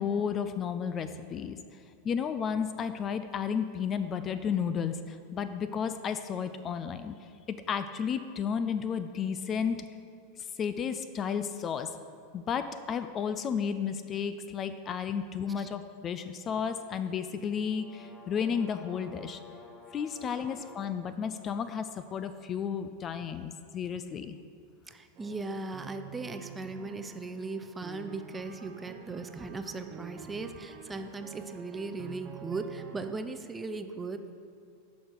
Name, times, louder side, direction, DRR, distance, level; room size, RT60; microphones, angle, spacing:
voice 1, 0.0-1.6 2.0-7.1 7.5-9.8 10.6-11.9 12.3-19.4 19.9-24.4, left 7 dB, 30° left, 11 dB, 0.4 m, -32 dB
sound 1, 17.2-21.1, left 2 dB, 15° left, 1.9 m, -52 dB
voice 2, 24.9-34.3, right 3 dB, 15° right, 8 dB, 0.5 m, -38 dB
sound 2, 25.1-33.1, right 8 dB, 45° right, 0.9 m, -48 dB
11.5 x 5.1 x 4.6 m, 2.4 s
hypercardioid pair, 95°, 0 cm